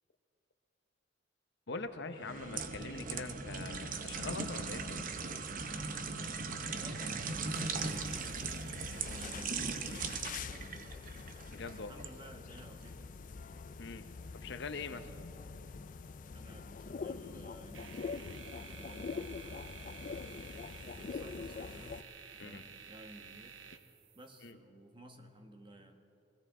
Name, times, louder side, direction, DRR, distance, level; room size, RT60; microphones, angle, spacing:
voice 1, 1.7-5.1 11.5-12.0 13.8-14.0 14.3-15.1 22.4-22.6 24.4-24.6, left 3 dB, 65° left, 9 dB, 0.8 m, -43 dB
sound 1, 2.2-12.1 12.6-12.8, right 4 dB, 45° right, 0.8 m, -39 dB
voice 2, 6.7-8.5 8.9-11.0 11.7-13.3 16.3-18.2 18.5-20.4 20.9-22.0 22.3-23.6 24.1-26.0, right 1 dB, 25° right, 5 dB, 1.2 m, -55 dB
Venice-pigeons, 7.8-22.0, left 4 dB, 45° left, 0.4 m, -45 dB
sound 2, 17.7-24.5, right 7 dB, 80° right, 0.9 m, -52 dB
21.0 x 16.5 x 3.7 m, 2.9 s
head